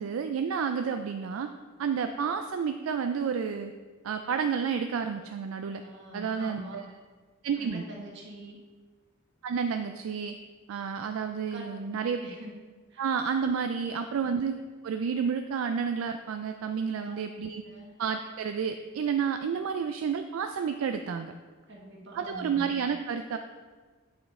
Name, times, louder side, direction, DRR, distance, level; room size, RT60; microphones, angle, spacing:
voice 1, 0.0-1.5 1.8-3.7 4.0-5.8 6.1-6.8 7.4-7.8 9.4-10.3 10.7-12.2 13.0-14.6 14.8-17.6 18.0-21.3 22.1-23.4, right 6 dB, 75° right, 7 dB, 0.3 m, -30 dB
voice 2, 5.7-6.8 7.5-8.6 11.4-12.6 12.9-13.1 13.7-14.4 17.0-17.1 17.6-17.9 21.7-22.7, right 1 dB, 55° right, -1 dB, 1.3 m, -45 dB
8.2 x 5.1 x 3.6 m, 1.4 s
head